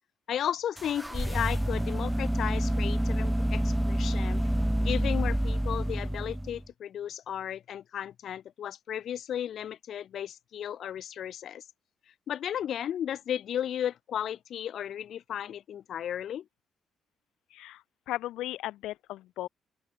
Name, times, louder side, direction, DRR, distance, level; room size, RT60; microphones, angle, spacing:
voice 1, 0.3-4.4 4.8-11.6 12.3-16.4, left 10 dB, 65° left, 4.8 m, -34 dB
sound 1, 0.8-6.7, equal, 5° right, 1.1 m, -28 dB
voice 2, 17.5-19.5, left 15 dB, 90° left, 4.4 m, -36 dB
open air
cardioid pair, 90°, 0 cm